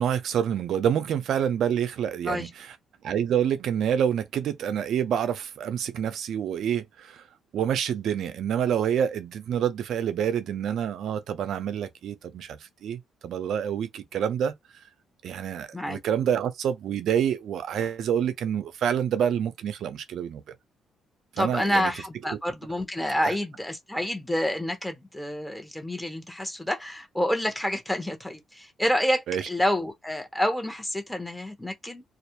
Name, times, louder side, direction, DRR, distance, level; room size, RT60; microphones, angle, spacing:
voice 1, 0.0-2.5 3.0-7.2 7.5-14.5 15.2-20.4 21.4-21.9 23.2-23.3 29.3-29.4, right 9 dB, 70° right, 0.5 m, -27 dB
voice 2, 21.4-32.0, left 1 dB, 10° left, 0.8 m, -28 dB
2.3 x 2.0 x 2.9 m
cardioid pair, 90°, 0 cm